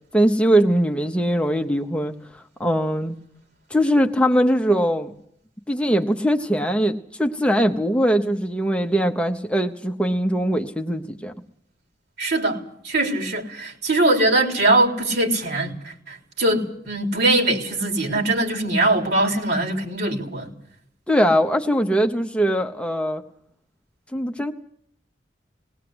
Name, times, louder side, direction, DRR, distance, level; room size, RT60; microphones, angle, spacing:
voice 1, 0.1-3.2 3.7-5.1 5.7-11.3 21.1-23.2 24.1-24.5, equal, 5° left, 4 dB, 0.9 m, -21 dB
voice 2, 12.2-20.5, right 2 dB, 65° right, 2 dB, 3.6 m, -22 dB
20.5 x 18.0 x 7.9 m, 0.69 s
head